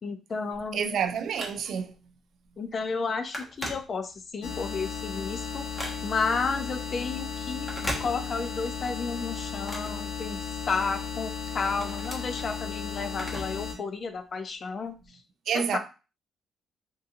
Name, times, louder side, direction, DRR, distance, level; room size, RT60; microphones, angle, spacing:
voice 1, 0.0-1.0 2.6-5.6 6.0-15.0 15.5-15.8, left 4 dB, 45° left, 0.5 m, -32 dB
Telephone, 0.5-2.0 2.4-2.7 2.9-4.4 4.8-6.4 7.5-8.6 9.0-10.7 11.2-13.7 14.0-14.1 15.0-15.1, equal, 15° left, 1.0 m, -39 dB
voice 2, 0.7-2.0 15.5-15.8, right 7 dB, 70° right, 0.4 m, -28 dB
sound 1, 4.4-13.7, left 6 dB, 85° left, 0.8 m, -35 dB
3.7 x 2.5 x 2.7 m
cardioid pair, 90°, 0 cm